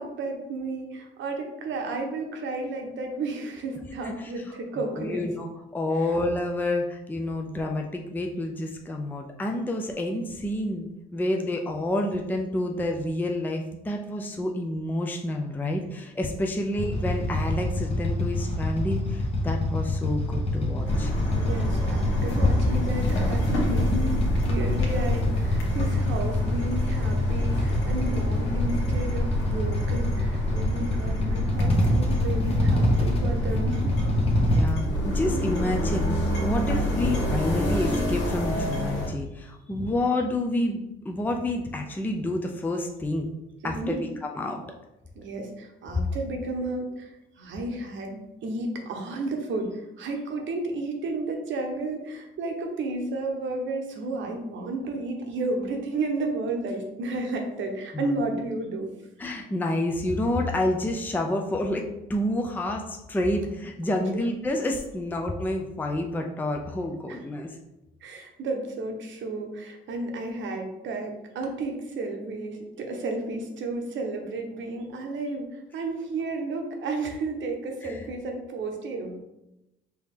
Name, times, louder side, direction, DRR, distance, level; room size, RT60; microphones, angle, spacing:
voice 1, 0.0-5.2 6.0-6.1 21.4-24.1 24.4-34.0 43.6-44.0 45.1-58.9 67.1-67.2 68.0-79.2, right 2 dB, 70° right, 3 dB, 0.9 m, -32 dB
voice 2, 4.7-5.5 5.7-21.1 34.4-43.3 43.6-44.6 57.9-58.1 59.2-67.6 77.8-78.0, left 1 dB, 10° left, 2 dB, 0.4 m, -29 dB
Motorcycle / Idling, 16.7-34.6, left 1 dB, 30° left, 0.9 m, -26 dB
sound 1, 20.9-39.1, left 1 dB, 85° left, 1.3 m, -28 dB
4.6 x 2.8 x 3.5 m, 0.92 s
cardioid pair, 90°, 20 cm